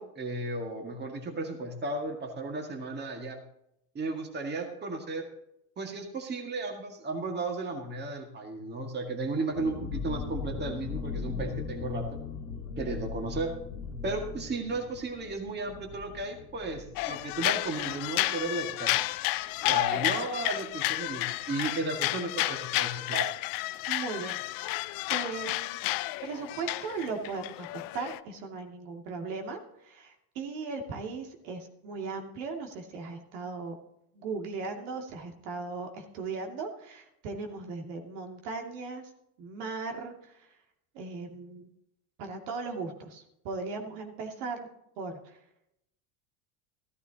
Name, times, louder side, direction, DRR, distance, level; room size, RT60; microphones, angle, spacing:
voice 1, 0.0-3.4 3.9-5.3 5.8-12.2 12.8-13.5 14.0-18.9 19.7-23.3, right 2 dB, 20° right, 3 dB, 2.0 m, -34 dB
sound 1, 9.5-18.9 19.2-19.3 19.6-19.9, left 5 dB, 80° left, 1.9 m, -39 dB
sound 2, 17.0-28.2, left 19 dB, 50° left, 0.5 m, -31 dB
voice 2, 19.7-20.2 23.9-25.8 26.2-33.7 34.1-39.1 39.4-40.5 40.9-41.7 42.2-44.7 45.0-45.4, right 4 dB, 75° right, 2 dB, 2.6 m, -38 dB
14.5 x 13.0 x 2.9 m, 0.80 s
supercardioid pair, 120°, 45 cm